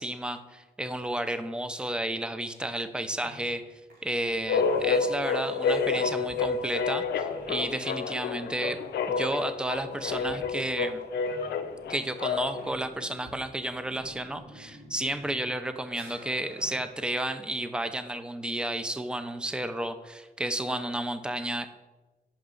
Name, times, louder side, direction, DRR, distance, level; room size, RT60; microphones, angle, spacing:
voice 1, 0.0-3.6 4.0-8.8 9.1-11.0 11.9-21.7, right 1 dB, 5° right, 9 dB, 0.4 m, -32 dB
sound 1, 3.2-3.6 3.9-15.6 15.9-18.1, equal, 65° right, 2.2 m, -50 dB
sound 2, 4.5-12.7, left 5 dB, 90° left, 0.4 m, -29 dB
5.8 x 5.3 x 3.8 m, 1.2 s
cardioid pair, 70°, 17 cm